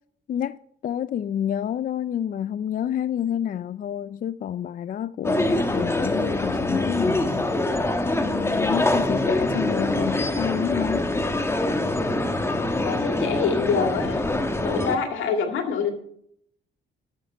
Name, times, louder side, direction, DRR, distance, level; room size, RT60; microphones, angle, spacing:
voice 1, 0.8-7.5 8.2-11.1, left 9 dB, 45° left, 0.4 m, -29 dB
sound 1, 5.2-15.0, left 2 dB, 15° left, 1.1 m, -24 dB
voice 2, 12.8-15.9, left 6 dB, 80° left, 2.1 m, -26 dB
12.5 x 6.5 x 5.7 m
cardioid pair, 90°, 20 cm